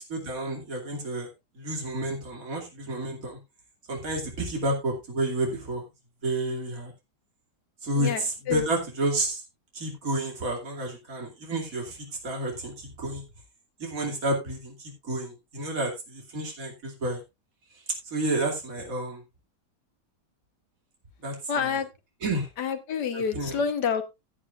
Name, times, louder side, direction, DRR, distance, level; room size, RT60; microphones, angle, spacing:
voice 1, 0.1-1.3 1.6-3.4 3.9-5.8 6.2-6.9 7.8-9.4 9.7-13.2 13.8-17.2 18.1-19.2 21.2-21.8 22.2-22.5 23.1-23.6, right 1 dB, 55° right, 0 dB, 3.1 m, -30 dB
voice 2, 8.0-8.6 21.5-21.9 22.6-24.0, left 6 dB, 75° left, 9 dB, 1.8 m, -28 dB
16.0 x 8.6 x 2.5 m, 0.23 s
omnidirectional pair, 1.8 m